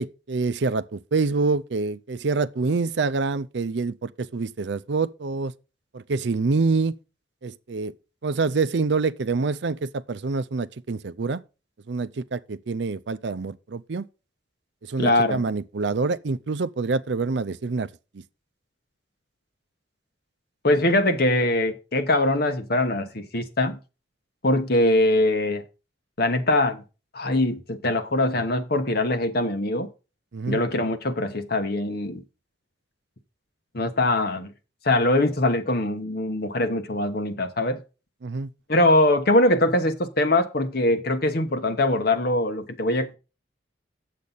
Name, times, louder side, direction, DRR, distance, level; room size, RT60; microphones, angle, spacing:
voice 1, 0.0-5.5 5.9-7.0 7.4-7.9 8.2-11.4 11.9-14.0 14.8-17.9 30.3-30.6 38.2-38.5, right 4 dB, 70° right, 0.5 m, -26 dB
voice 2, 15.0-15.4 20.6-23.8 24.4-25.6 26.2-26.8 27.1-29.9 30.5-32.2 33.7-34.5 34.8-37.8 38.7-43.1, left 1 dB, 55° left, 1.2 m, -22 dB
8.4 x 7.5 x 4.0 m
head